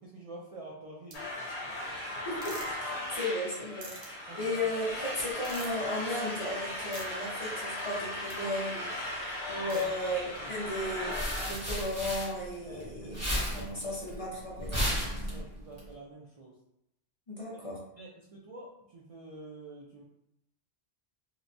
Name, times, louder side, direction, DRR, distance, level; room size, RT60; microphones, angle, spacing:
voice 1, 0.0-1.3 4.3-4.6 9.6-9.9 10.4-10.5 12.7-13.1 13.4-13.9 14.6-14.8 15.3-16.6 17.6-17.7 18.0-20.0, right 2 dB, 60° right, -3 dB, 0.3 m, -47 dB
sound 1, 1.1-11.5, left 1 dB, 90° left, 0.9 m, -37 dB
sound 2, 1.1-1.2 2.4-2.7 3.8-4.1 5.4-5.8 6.9-7.1 8.3-8.4 9.7-9.8, right 3 dB, 80° right, 1.0 m, -44 dB
voice 2, 2.2-13.1 13.5-14.7 17.3-17.8, left 1 dB, 40° left, -5 dB, 0.6 m, -35 dB
sound 3, 10.7-12.8 13.1-15.8, equal, 15° right, 0.8 m, -33 dB
2.9 x 2.1 x 2.5 m, 0.81 s
omnidirectional pair, 1.1 m